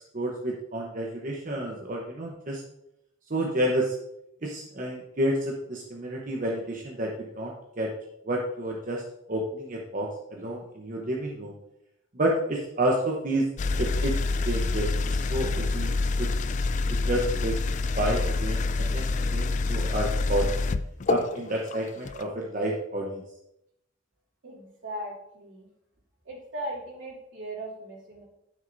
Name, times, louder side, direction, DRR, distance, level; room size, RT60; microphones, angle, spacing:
voice 1, 0.1-2.6 3.3-3.9 4.4-7.9 8.3-9.0 9.3-11.5 12.1-13.5 13.8-14.1 14.4-15.9 16.2-16.3 16.9-17.6 18.0-20.5 21.1-23.2, right 1 dB, 45° right, -1 dB, 1.0 m, -30 dB
sound 1, 13.6-22.2, left 3 dB, 40° left, 0.3 m, -27 dB
voice 2, 24.4-25.7 26.2-28.2, right 1 dB, 75° right, -3 dB, 2.8 m, -38 dB
11.0 x 6.2 x 2.7 m, 0.82 s
head